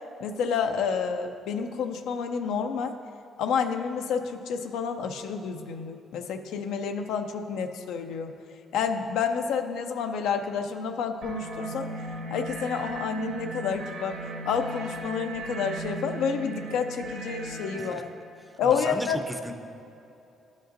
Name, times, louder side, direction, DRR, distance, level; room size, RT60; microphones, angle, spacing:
voice 1, 0.2-3.0 3.4-8.3 8.7-11.9 12.3-18.0 18.6-19.2, left 6 dB, 85° left, 6 dB, 0.4 m, -29 dB
sound 1, 11.2-17.9, right 2 dB, 85° right, 1.6 m, -37 dB
voice 2, 18.6-19.5, equal, 5° right, 6 dB, 0.5 m, -35 dB
11.5 x 5.1 x 2.6 m, 2.7 s
cardioid pair, 90°, 0 cm